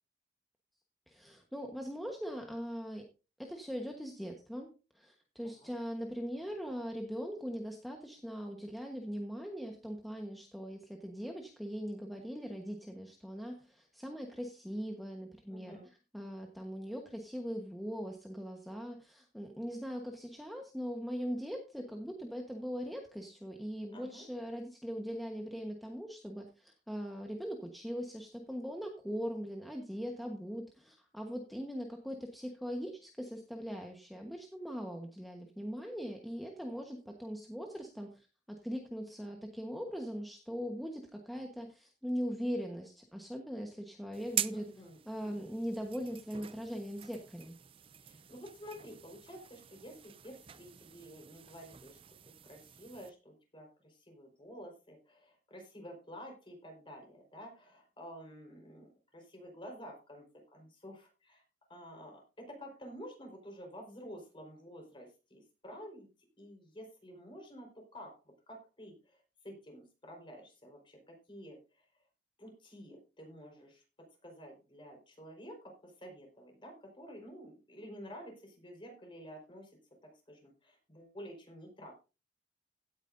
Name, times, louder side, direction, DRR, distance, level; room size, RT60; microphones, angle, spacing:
voice 1, 1.1-3.1 3.4-15.7 16.1-44.6 45.1-47.5, equal, ahead, 2 dB, 1.2 m, -40 dB
voice 2, 15.5-15.9 23.9-24.2 44.5-45.5 48.0-60.2 60.5-61.4 61.7-66.1 66.4-68.2 68.5-71.8 72.4-73.8 74.2-79.8 80.3-81.9, equal, 30° left, 2 dB, 4.6 m, -50 dB
sound 1, 44.1-53.1, right 10 dB, 30° right, 0.5 m, -44 dB
16.5 x 9.2 x 2.7 m, 0.31 s
head